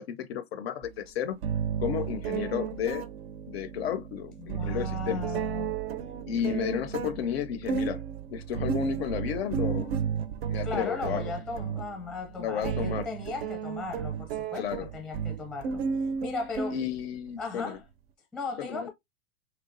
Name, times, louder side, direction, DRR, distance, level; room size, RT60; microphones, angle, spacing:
voice 1, 0.0-1.4 1.8-3.0 3.5-5.2 6.3-8.0 8.3-9.9 10.5-11.3 12.4-13.1 14.6-14.9 16.7-17.8 18.6-18.9, left 9 dB, 55° left, 0.4 m, -32 dB
sound 1, 0.8-0.9 1.4-17.3, right 7 dB, 50° right, 0.4 m, -33 dB
voice 2, 4.4-5.8 10.6-15.8 16.2-16.8 17.4-17.8 18.3-18.9, left 3 dB, ahead, 0.6 m, -37 dB
3.3 x 2.8 x 2.4 m
supercardioid pair, 160°, 39 cm